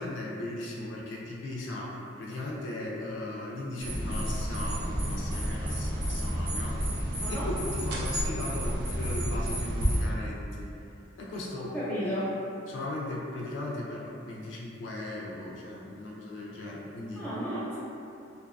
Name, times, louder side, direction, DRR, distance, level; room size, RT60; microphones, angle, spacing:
voice 1, 0.0-6.8 7.3-10.7 11.2-11.7 12.7-17.3, left 1 dB, 70° left, -3 dB, 0.4 m, -37 dB
sound 1, 3.8-10.0, equal, 55° right, 0.5 m, -30 dB
voice 2, 11.7-12.3 17.2-17.8, equal, 10° left, -10 dB, 0.6 m, -33 dB
2.5 x 2.2 x 2.4 m, 2.7 s
head